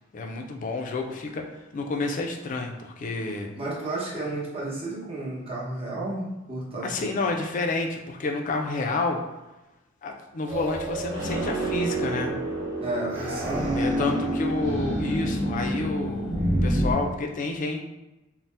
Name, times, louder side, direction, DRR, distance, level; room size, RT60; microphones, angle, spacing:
voice 1, 0.1-1.5 1.7-3.5 6.8-9.2 10.0-12.3 13.7-17.8, left 3 dB, 40° left, 3 dB, 0.3 m, -29 dB
voice 2, 3.2-7.2 12.8-14.1, right 2 dB, 30° right, -6 dB, 0.9 m, -33 dB
sound 1, 10.5-16.9, right 1 dB, 60° right, 0.8 m, -27 dB
2.7 x 2.0 x 3.2 m, 1.0 s
head